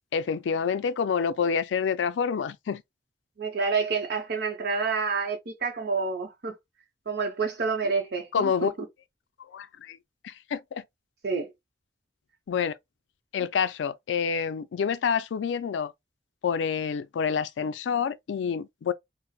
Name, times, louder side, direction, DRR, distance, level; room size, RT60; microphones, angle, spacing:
voice 1, 0.1-2.8 8.3-8.7 9.5-10.0 10.2-10.8 12.5-12.7 13.3-15.9 16.4-18.9, left 6 dB, 85° left, 0.4 m, -28 dB
voice 2, 3.4-6.5 7.1-8.7 11.2-11.5, right 4 dB, 60° right, 0.7 m, -28 dB
4.0 x 2.0 x 2.2 m
head